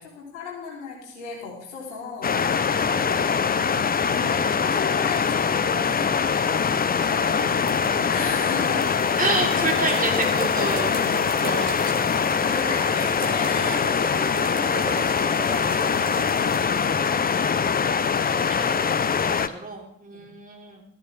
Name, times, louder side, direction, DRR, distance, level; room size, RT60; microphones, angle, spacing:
voice 1, 0.0-2.7 3.0-3.7 4.1-6.1 6.4-6.7 7.0-7.8 8.1-9.0 9.8-10.1 10.9-11.3 12.5-17.8 20.1-20.3, left 4 dB, 70° left, -2 dB, 3.5 m, -36 dB
sound 1, 2.2-19.5, left 6 dB, 25° left, 0.8 m, -23 dB
voice 2, 2.8-3.3 9.2-10.9 11.4-12.2 18.5-20.8, right 3 dB, 20° right, 0 dB, 3.5 m, -30 dB
sound 2, 6.3-16.6, right 3 dB, 85° right, 1.3 m, -38 dB
14.0 x 14.0 x 3.5 m, 0.72 s
figure-of-eight pair, 45°, 37 cm